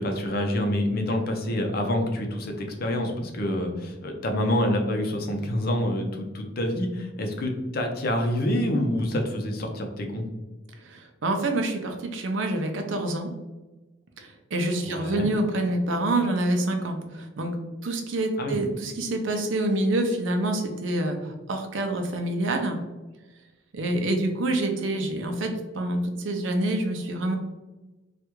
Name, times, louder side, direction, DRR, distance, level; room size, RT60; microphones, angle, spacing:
voice 1, 0.0-10.2 14.8-15.3 18.4-18.6, left 1 dB, 50° left, 3 dB, 0.6 m, -27 dB
voice 2, 10.8-13.3 14.2-22.8 23.7-27.4, right 1 dB, 85° right, 4 dB, 0.5 m, -27 dB
3.3 x 2.4 x 3.0 m, 1.1 s
head